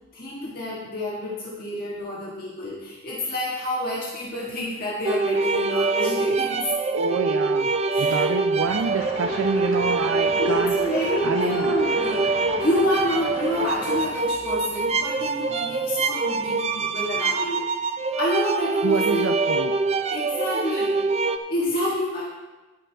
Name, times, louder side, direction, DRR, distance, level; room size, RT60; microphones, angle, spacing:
voice 1, 0.1-6.7 7.9-8.3 8.5-8.7 10.4-12.3 12.6-17.6 18.1-19.3 20.1-21.0 21.5-22.2, left 1 dB, 45° left, -6 dB, 1.5 m, -28 dB
sound 1, 5.0-21.4, right 3 dB, 30° right, 0.4 m, -25 dB
voice 2, 6.9-7.7 8.0-10.8 11.2-11.7 18.8-19.7 20.7-20.8, right 4 dB, 90° right, 5 dB, 0.5 m, -27 dB
sound 2, 8.6-14.1, left 1 dB, 80° left, 2.2 m, -36 dB
18.0 x 6.3 x 3.4 m, 1.2 s
head